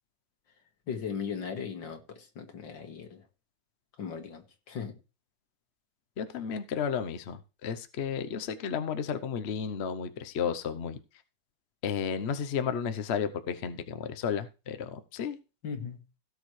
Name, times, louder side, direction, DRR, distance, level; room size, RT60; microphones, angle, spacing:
voice 1, 0.9-3.2 4.0-4.9 15.6-16.0, left 6 dB, 75° left, 2.4 m, -38 dB
voice 2, 6.2-11.0 11.8-15.4, left 7 dB, 50° left, 0.8 m, -33 dB
17.0 x 7.0 x 3.2 m
omnidirectional pair, 2.0 m